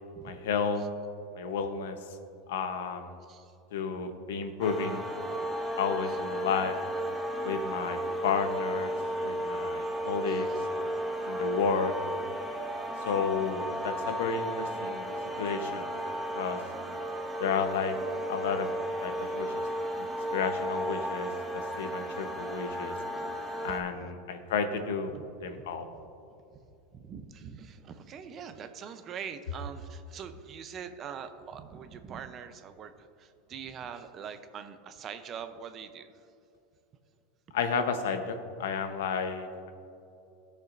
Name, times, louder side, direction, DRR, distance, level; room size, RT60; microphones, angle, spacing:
voice 1, 0.2-0.8 1.3-2.2 2.5-3.2 3.7-5.0 5.8-6.8 7.4-8.9 9.2-10.5 11.2-11.9 13.0-15.9 16.3-16.6 17.4-17.9 18.3-18.7 19.0-19.6 20.0-20.1 20.3-22.9 23.6-25.1 25.4-25.9 37.5-39.7, left 6 dB, 85° left, 7 dB, 0.9 m, -32 dB
sound 1, 4.6-23.8, right 1 dB, 10° right, 1.0 m, -34 dB
voice 2, 10.3-10.7 24.0-24.1 25.1-25.2 26.9-36.1, right 7 dB, 35° right, 9 dB, 0.6 m, -43 dB
17.0 x 6.7 x 2.6 m, 2.7 s
supercardioid pair, 135°, 0 cm